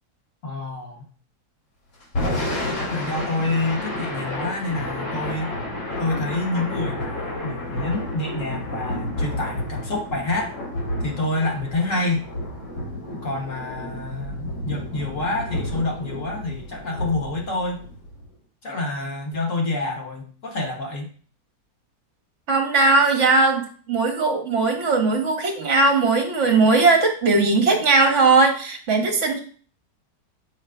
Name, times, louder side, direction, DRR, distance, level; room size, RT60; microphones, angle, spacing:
voice 1, 0.4-1.1 2.8-5.5 6.0-10.6 11.0-12.3 13.1-17.8 18.6-21.1, left 2 dB, 50° left, 1 dB, 1.6 m, -27 dB
Thunder / Rain, 2.0-18.3, left 1 dB, 90° left, 3.4 m, -30 dB
voice 2, 22.5-29.4, right 3 dB, 50° right, 4 dB, 1.3 m, -19 dB
7.5 x 5.4 x 2.3 m, 0.42 s
omnidirectional pair, 1.8 m